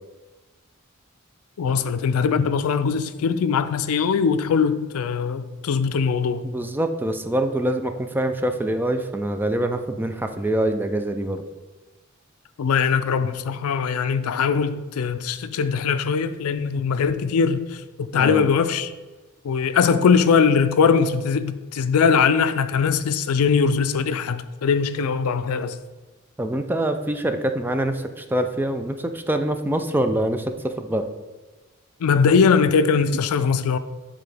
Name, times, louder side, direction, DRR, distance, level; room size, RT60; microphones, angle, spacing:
voice 1, 1.6-6.4 12.6-18.9 19.4-25.8 32.0-33.8, left 6 dB, 80° left, 0.4 m, -21 dB
voice 2, 6.4-11.4 18.1-18.5 26.4-31.1, right 1 dB, 10° right, 0.3 m, -25 dB
8.9 x 3.7 x 3.3 m
head